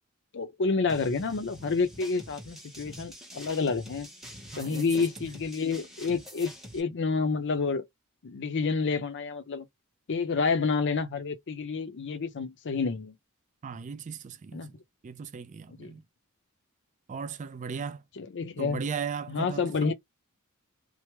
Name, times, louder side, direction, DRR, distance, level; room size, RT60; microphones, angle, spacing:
voice 1, 0.3-4.1 4.6-7.9 8.2-9.7 10.1-13.2 14.5-14.7 15.7-15.9 18.2-18.8 19.3-19.9, left 4 dB, 60° left, 0.6 m, -29 dB
sound 1, 0.9-6.8, equal, ahead, 0.9 m, -46 dB
voice 2, 4.5-4.9 13.6-14.7 15.0-16.0 17.1-18.0 18.6-19.9, right 6 dB, 35° right, 0.4 m, -37 dB
3.0 x 2.0 x 3.2 m
head